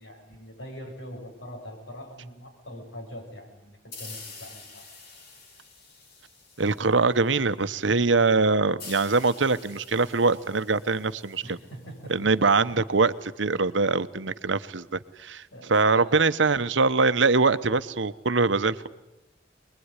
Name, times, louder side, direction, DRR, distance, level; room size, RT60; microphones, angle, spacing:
voice 1, 0.0-4.8 11.4-12.3 15.5-15.7 15.9-16.1, equal, 90° left, 2 dB, 7.7 m, -42 dB
sound 1, 3.9-7.3 8.8-12.3, left 4 dB, 60° left, 5.1 m, -47 dB
voice 2, 6.6-11.6 12.1-18.9, right 4 dB, 90° right, 12 dB, 1.0 m, -23 dB
24.0 x 21.5 x 9.8 m, 0.98 s
head